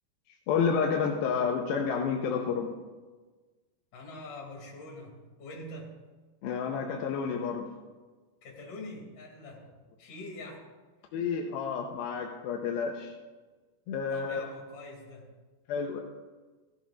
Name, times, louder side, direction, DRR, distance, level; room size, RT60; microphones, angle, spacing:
voice 1, 0.5-2.7 6.4-7.7 11.1-13.1 13.9-14.4 15.7-16.0, left 6 dB, 85° left, 0 dB, 2.7 m, -30 dB
voice 2, 3.9-5.9 8.4-9.6 10.0-10.6 14.1-15.3, left 2 dB, 60° left, -3 dB, 4.2 m, -44 dB
15.5 x 14.0 x 2.5 m, 1.3 s
omnidirectional pair, 4.3 m